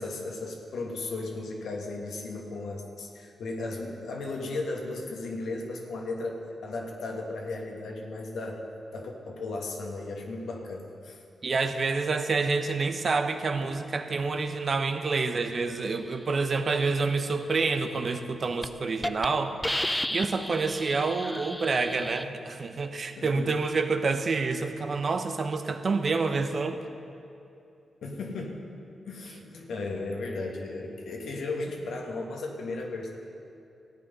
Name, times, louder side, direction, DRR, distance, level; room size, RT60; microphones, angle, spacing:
voice 1, 0.0-8.6 8.9-11.2 23.1-23.5 28.0-28.6 29.0-33.1, left 2 dB, 75° left, 1 dB, 1.6 m, -35 dB
voice 2, 11.4-19.6 19.8-26.8, right 4 dB, 55° right, 8 dB, 0.9 m, -28 dB
Hiss, 18.0-18.2 18.6-18.7 19.0-19.3 19.6-22.2, left 1 dB, 10° left, 0.5 m, -32 dB
14.5 x 8.8 x 5.4 m, 2.7 s
supercardioid pair, 45°, 0 cm